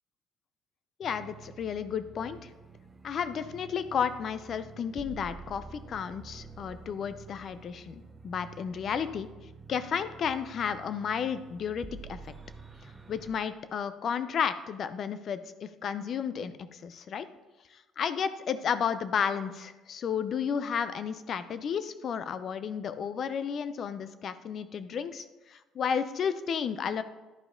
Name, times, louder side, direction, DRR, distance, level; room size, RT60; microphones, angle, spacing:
voice 1, 1.0-2.5 3.0-9.3 9.7-12.3 13.1-17.3 17.7-27.0, left 7 dB, 50° left, 13 dB, 0.5 m, -32 dB
sound 1, 1.0-13.3, right 4 dB, 15° right, 0.7 m, -49 dB
11.0 x 4.8 x 3.7 m, 1.1 s
cardioid pair, 95°, 0 cm